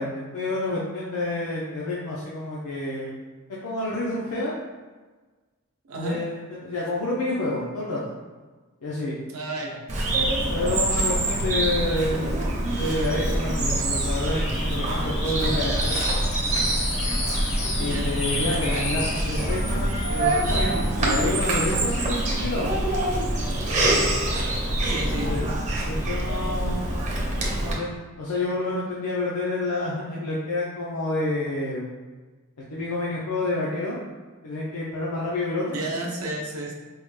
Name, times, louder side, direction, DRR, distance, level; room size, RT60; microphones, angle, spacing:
voice 1, 0.0-3.1 3.6-4.5 6.0-8.1 8.8-9.2 10.5-12.4 12.8-16.0 17.8-22.7 24.9-25.5 25.9-27.2 27.6-31.8 32.6-34.0 34.4-35.8, left 2 dB, 90° left, -5 dB, 0.6 m, -29 dB
voice 2, 5.9-6.2 9.3-9.8 17.8-18.2 18.5-19.3 23.8-24.1 24.8-25.3 35.7-36.7, right 1 dB, 75° right, -1 dB, 0.6 m, -32 dB
Bird vocalization bird call bird song, 9.9-27.7, right 1 dB, 35° right, 0.6 m, -25 dB
sound 1, 13.0-21.0, left 2 dB, 30° left, 0.4 m, -33 dB
4.6 x 2.1 x 3.1 m, 1.3 s
head